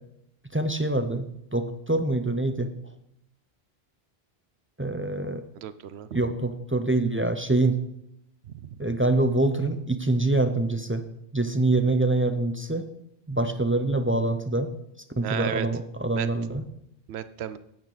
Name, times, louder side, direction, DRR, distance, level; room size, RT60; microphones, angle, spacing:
voice 1, 0.5-2.7 4.8-5.4 6.1-7.8 8.8-11.0 11.3-12.8 13.3-14.7 15.2-16.6, right 2 dB, 15° right, 8 dB, 0.5 m, -25 dB
voice 2, 5.5-6.3 8.4-8.9 15.2-15.7 16.1-16.3 17.1-17.6, right 10 dB, 75° right, 14 dB, 0.9 m, -34 dB
10.5 x 8.9 x 4.0 m, 0.77 s
omnidirectional pair, 1.1 m